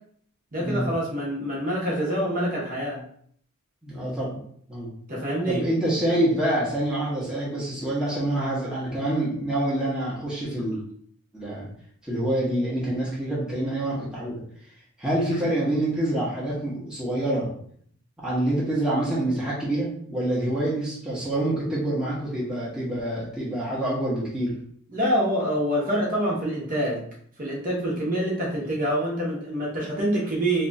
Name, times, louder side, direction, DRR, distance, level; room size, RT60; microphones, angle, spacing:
voice 1, 0.5-3.0 5.1-5.7 15.3-15.4 24.9-27.0 27.4-30.7, equal, 40° right, -4 dB, 1.0 m, -26 dB
voice 2, 3.8-4.4 4.7-4.9 5.5-10.8 11.3-11.7 12.0-14.4 15.0-17.5 18.2-24.6, right 1 dB, 5° right, -8 dB, 0.9 m, -26 dB
2.9 x 2.3 x 4.0 m, 0.62 s
head